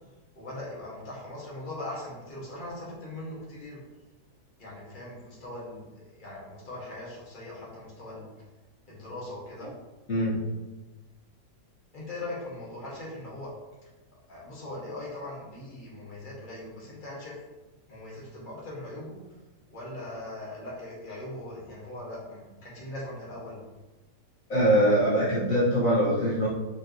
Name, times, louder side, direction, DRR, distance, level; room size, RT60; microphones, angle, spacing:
voice 1, 0.4-3.8 4.6-5.9 6.1-8.3 8.9-9.7 11.9-13.5 14.3-17.4 17.9-19.2 19.7-23.6, left 1 dB, 30° left, -6 dB, 2.0 m, -40 dB
voice 2, 24.5-26.5, equal, 55° left, -9 dB, 2.1 m, -23 dB
8.3 x 4.9 x 3.1 m, 1.1 s
omnidirectional pair, 1.8 m